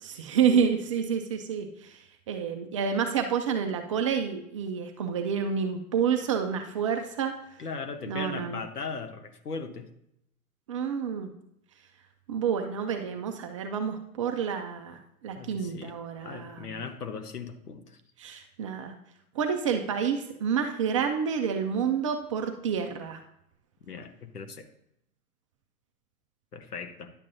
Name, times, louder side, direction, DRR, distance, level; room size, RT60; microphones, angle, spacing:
voice 1, 0.0-7.3 8.1-8.6 10.7-11.3 12.3-15.0 15.2-16.8 18.2-19.0 19.4-23.2, right 7 dB, 25° right, 5 dB, 0.4 m, -29 dB
voice 2, 7.6-9.9 15.4-15.9 16.2-18.0 23.8-24.7 26.5-27.1, left 5 dB, 85° left, 8 dB, 1.1 m, -38 dB
10.5 x 7.3 x 2.6 m, 0.76 s
figure-of-eight pair, 110°, 45 cm